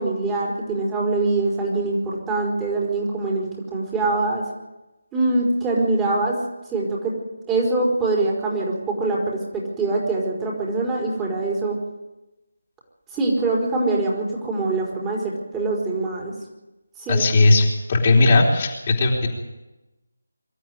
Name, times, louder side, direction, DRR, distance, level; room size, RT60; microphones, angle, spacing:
voice 1, 0.0-4.4 5.1-6.4 6.7-7.1 7.5-11.8 13.1-16.3 17.0-17.2, right 2 dB, 10° right, -4 dB, 4.4 m, -23 dB
voice 2, 17.1-19.3, left 2 dB, 30° left, -2 dB, 3.8 m, -17 dB
24.5 x 13.0 x 9.7 m, 1.0 s
figure-of-eight pair, 155°, 0 cm